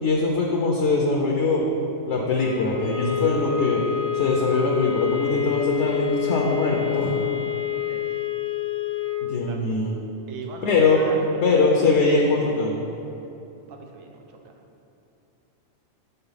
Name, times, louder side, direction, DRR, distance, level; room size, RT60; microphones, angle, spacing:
voice 1, 0.0-1.7 2.1-3.8 4.1-7.1 9.3-9.9 10.6-11.0 11.4-12.7, left 3 dB, 65° left, -1 dB, 1.0 m, -22 dB
sound 1, 2.3-9.3, left 11 dB, 80° left, 1.3 m, -27 dB
voice 2, 9.3-9.6 10.3-11.8 13.7-14.5, right 4 dB, 75° right, 2 dB, 1.1 m, -39 dB
6.9 x 4.1 x 5.6 m, 2.8 s
omnidirectional pair, 1.4 m